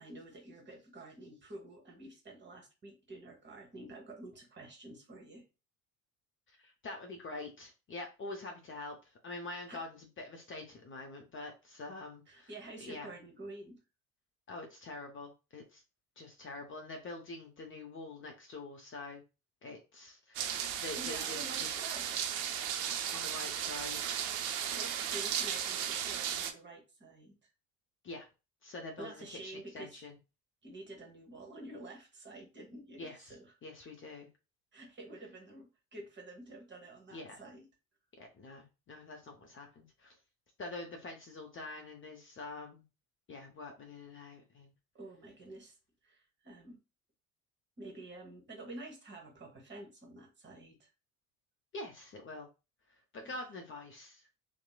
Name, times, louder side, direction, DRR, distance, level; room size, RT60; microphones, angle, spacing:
voice 1, 0.0-5.4 9.7-9.8 12.3-13.8 21.0-22.4 24.7-27.5 28.7-30.0 30.6-33.5 34.7-37.6 44.9-45.8 46.0-46.8 47.8-50.9 53.2-53.4, right 2 dB, 25° right, 2 dB, 1.1 m, -49 dB
voice 2, 6.6-9.0 9.2-12.5 12.8-13.1 14.5-15.8 16.2-19.2 19.6-21.7 23.1-24.1 28.0-28.3 28.6-30.2 33.0-33.3 33.6-34.3 37.1-37.4 38.2-40.1 40.6-42.8 43.3-44.7 51.7-52.5 53.1-54.3, left 2 dB, 30° left, 2 dB, 0.6 m, -45 dB
sound 1, 20.3-26.5, right 9 dB, 70° right, 0.5 m, -35 dB
2.9 x 2.0 x 2.2 m, 0.29 s
hypercardioid pair, 65°, 42 cm